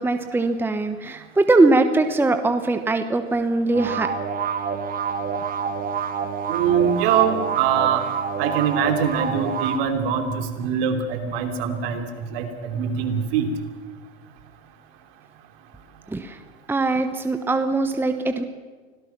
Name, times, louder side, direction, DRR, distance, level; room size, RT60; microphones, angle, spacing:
voice 1, 0.0-4.1 16.1-16.4 16.7-18.4, right 2 dB, 5° right, 8 dB, 1.0 m, -21 dB
sound 1, 3.7-9.8, right 6 dB, 25° right, 1.9 m, -27 dB
voice 2, 6.5-8.0 8.4-12.0 12.3-13.5, right 8 dB, 60° right, 6 dB, 3.1 m, -23 dB
25.0 x 17.5 x 6.0 m, 1.4 s
hypercardioid pair, 110°, 32 cm